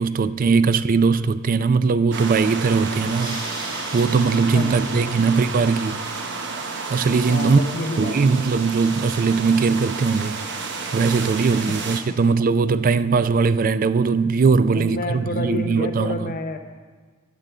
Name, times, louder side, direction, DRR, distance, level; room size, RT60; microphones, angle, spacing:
voice 1, 0.0-3.5 3.9-6.0 6.9-7.6 8.0-10.4 10.9-16.3, right 4 dB, 40° right, 0.3 m, -20 dB
sound 1, 2.1-12.0, right 4 dB, 60° right, 1.0 m, -31 dB
sound 2, 2.8-10.1, right 1 dB, 25° right, 2.4 m, -41 dB
voice 2, 4.5-5.3 7.3-8.5 11.5-11.8 14.7-16.6, left 2 dB, 45° left, 0.7 m, -30 dB
9.1 x 6.8 x 8.2 m
head